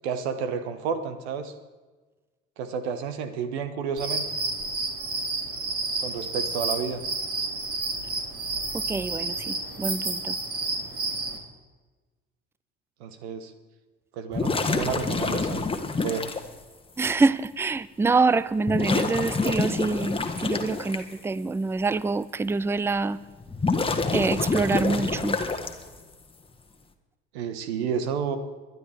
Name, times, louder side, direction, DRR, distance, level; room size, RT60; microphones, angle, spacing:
voice 1, 0.0-1.5 2.6-4.3 6.0-7.0 13.0-13.5 14.2-15.6 16.0-16.3 27.3-28.4, right 6 dB, 70° right, 1.3 m, -31 dB
sound 1, 4.0-11.4, right 3 dB, 40° right, 2.9 m, -30 dB
voice 2, 8.7-10.4 17.0-23.2 24.1-25.4, right 3 dB, 5° right, 0.4 m, -25 dB
sound 2, 14.3-16.4 17.5-17.6 18.7-21.0 23.4-26.0, left 3 dB, 15° left, 1.4 m, -27 dB
22.5 x 11.0 x 3.5 m
figure-of-eight pair, 55°, 34 cm